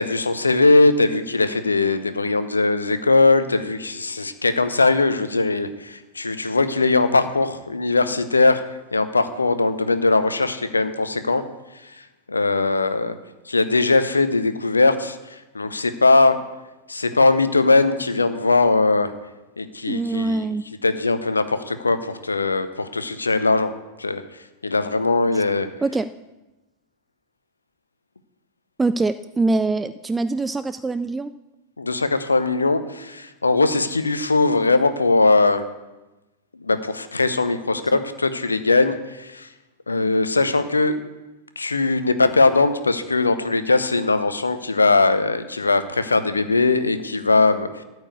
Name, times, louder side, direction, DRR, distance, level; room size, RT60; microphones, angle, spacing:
voice 1, 0.0-8.6 8.9-11.4 11.8-13.1 13.5-16.4 16.9-19.1 19.6-20.5 20.8-23.7 24.0-24.2 24.6-25.7 31.8-35.7 36.6-39.5 39.9-41.0 41.6-47.8, left 3 dB, 80° left, 11 dB, 0.8 m, -20 dB
voice 2, 19.9-20.6 25.3-25.4 25.8-26.1 28.8-31.3, right 3 dB, 10° right, 12 dB, 0.3 m, -23 dB
13.5 x 4.8 x 8.4 m, 1.1 s
figure-of-eight pair, 90°, 0 cm